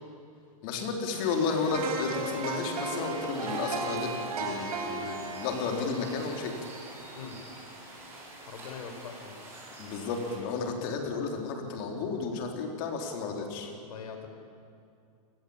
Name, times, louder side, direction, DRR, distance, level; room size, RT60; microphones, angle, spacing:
voice 1, 0.6-4.1 4.4-6.5 9.8-13.7, left 4 dB, 35° left, 2 dB, 3.8 m, -32 dB
sound 1, 1.1-10.4, right 2 dB, 15° right, 7.2 m, -47 dB
sound 2, 1.7-7.7 8.1-8.2, right 4 dB, 85° right, 5.0 m, -36 dB
voice 2, 8.5-9.4 13.8-14.3, left 6 dB, 75° left, 6 dB, 5.2 m, -42 dB
29.5 x 19.5 x 8.8 m, 2.5 s
supercardioid pair, 170°, 19 cm